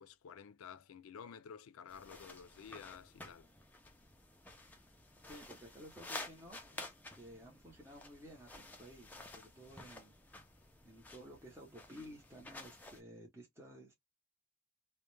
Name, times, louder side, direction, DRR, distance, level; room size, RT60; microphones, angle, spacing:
voice 1, 0.0-3.5, left 7 dB, 85° left, 0.4 m, -52 dB
sound 1, 1.9-13.0, left 2 dB, 10° left, 0.3 m, -52 dB
voice 2, 5.3-10.1 10.8-13.9, equal, 10° right, 0.7 m, -54 dB
2.2 x 2.1 x 3.0 m
head